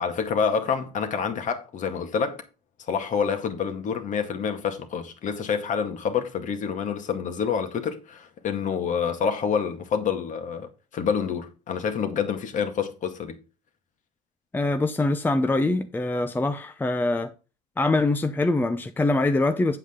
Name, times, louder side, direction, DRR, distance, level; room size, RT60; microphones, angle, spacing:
voice 1, 0.0-2.4 2.9-13.4, left 6 dB, 45° left, 2.0 m, -27 dB
voice 2, 14.5-17.3 17.8-19.8, left 2 dB, 10° left, 0.8 m, -24 dB
8.2 x 8.0 x 3.7 m
supercardioid pair, 110°, 18 cm